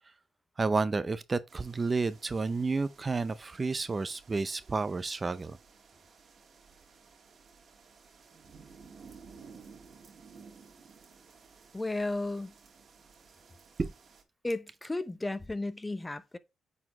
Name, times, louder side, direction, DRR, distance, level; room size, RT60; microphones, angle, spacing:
voice 1, 0.6-5.6 13.8-13.9, right 4 dB, 30° right, 0.5 m, -31 dB
sound 1, 1.5-14.2, right 5 dB, 50° right, 1.7 m, -56 dB
voice 2, 11.7-12.5 14.4-16.4, left 2 dB, 15° left, 0.6 m, -34 dB
8.8 x 4.2 x 2.9 m
cardioid pair, 90°, 0 cm